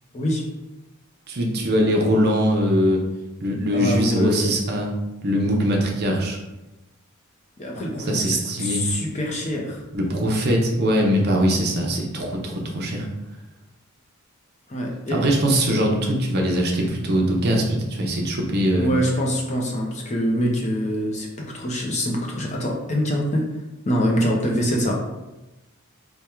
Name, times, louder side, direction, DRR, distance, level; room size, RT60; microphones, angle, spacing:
voice 1, 1.3-3.0 3.4-4.9 5.2-6.4 8.1-8.9 9.9-13.1 15.1-18.9, equal, 45° right, 0 dB, 0.6 m, -21 dB
voice 2, 3.7-4.5 7.6-9.8 14.7-15.3 18.6-21.3 21.5-23.4 23.8-24.9, equal, 30° left, -1 dB, 0.6 m, -24 dB
3.5 x 2.2 x 4.3 m, 1.0 s
head